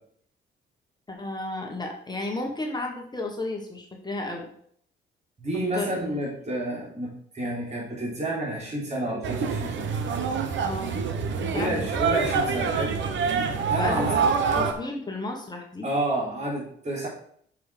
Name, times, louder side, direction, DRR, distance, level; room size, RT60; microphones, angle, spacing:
voice 1, 1.1-4.5 5.7-6.0 10.6-11.0 11.4-11.9 13.8-14.0 14.5-15.9, left 2 dB, 20° left, 1 dB, 1.5 m, -33 dB
voice 2, 5.4-9.9 11.5-13.0 13.7-14.3 15.8-17.1, right 1 dB, 35° right, -5 dB, 4.0 m, -29 dB
sound 1, 9.2-14.7, right 5 dB, 70° right, 1.2 m, -26 dB
7.0 x 6.1 x 5.1 m, 0.64 s
cardioid pair, 90°, 20 cm